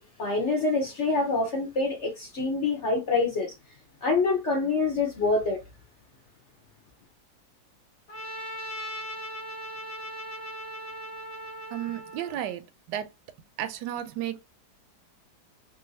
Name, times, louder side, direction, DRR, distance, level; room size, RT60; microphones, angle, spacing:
voice 1, 0.0-3.5 4.0-5.6, left 3 dB, 65° left, 0.7 m, -26 dB
Trumpet, 8.1-12.5, equal, 45° left, 1.0 m, -38 dB
voice 2, 11.7-12.6 12.9-13.1 13.6-14.5, right 11 dB, 75° right, 1.1 m, -33 dB
3.1 x 2.5 x 2.7 m
omnidirectional pair, 2.1 m